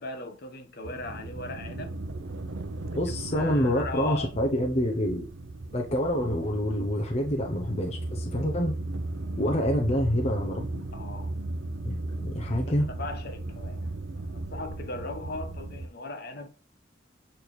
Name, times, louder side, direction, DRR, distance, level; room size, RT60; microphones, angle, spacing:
voice 1, 0.0-2.0 2.9-4.3 10.9-11.3 12.8-13.9 14.3-16.5, left 2 dB, 55° left, 1.2 m, -38 dB
sound 1, 0.8-15.9, right 2 dB, 80° right, 0.7 m, -36 dB
voice 2, 2.9-5.2 5.7-8.7 9.4-10.8 11.8-12.9, equal, 35° left, 0.9 m, -27 dB
7.9 x 4.4 x 3.3 m
head